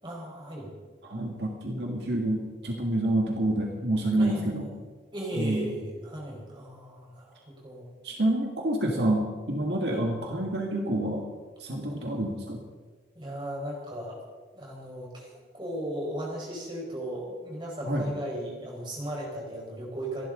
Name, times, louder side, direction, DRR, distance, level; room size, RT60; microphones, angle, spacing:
voice 1, 0.0-0.7 4.2-4.7 5.1-7.9 9.9-10.0 13.1-14.2 14.5-20.3, right 1 dB, 25° right, -2 dB, 4.8 m, -36 dB
voice 2, 1.0-4.7 5.3-5.7 8.0-11.3 11.6-12.6 17.8-18.1, right 1 dB, 70° right, 1 dB, 1.9 m, -28 dB
28.0 x 11.5 x 3.9 m, 1.4 s
head